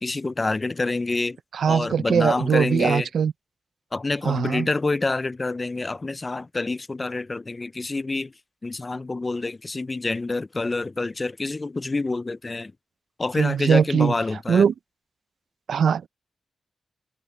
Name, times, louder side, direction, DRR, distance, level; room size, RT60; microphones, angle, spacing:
voice 1, 0.0-1.4 1.7-3.1 3.9-8.3 8.6-12.7 13.2-14.6, left 3 dB, 25° left, 0.3 m, -27 dB
voice 2, 1.5-3.3 4.2-4.7 13.4-14.1 14.5-14.7 15.7-16.1, right 7 dB, 85° right, 0.5 m, -21 dB
wide cardioid pair, 150°, 0 cm